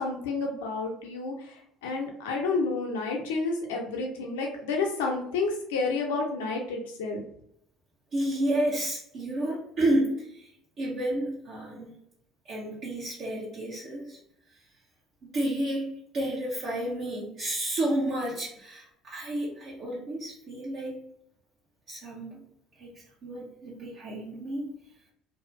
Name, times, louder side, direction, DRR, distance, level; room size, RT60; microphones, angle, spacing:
voice 1, 0.0-7.2, left 3 dB, 80° left, 1 dB, 0.6 m, -30 dB
voice 2, 8.1-10.5 10.8-11.9 12.4-14.2 15.2-15.9 16.1-21.0 21.9-22.4 22.8-22.9 23.2-24.7, right 1 dB, 55° right, -7 dB, 0.9 m, -31 dB
2.6 x 2.4 x 2.6 m, 0.72 s
hypercardioid pair, 60°, 0 cm